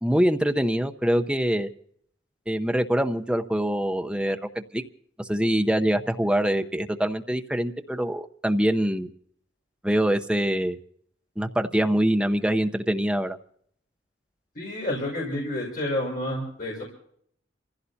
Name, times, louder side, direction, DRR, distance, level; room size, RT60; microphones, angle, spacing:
voice 1, 0.0-1.7 2.5-4.8 5.2-9.1 9.8-10.8 11.4-13.4, equal, 5° right, 6 dB, 0.7 m, -24 dB
voice 2, 14.5-16.8, left 1 dB, 50° left, -3 dB, 5.3 m, -29 dB
28.0 x 15.5 x 2.8 m, 0.65 s
head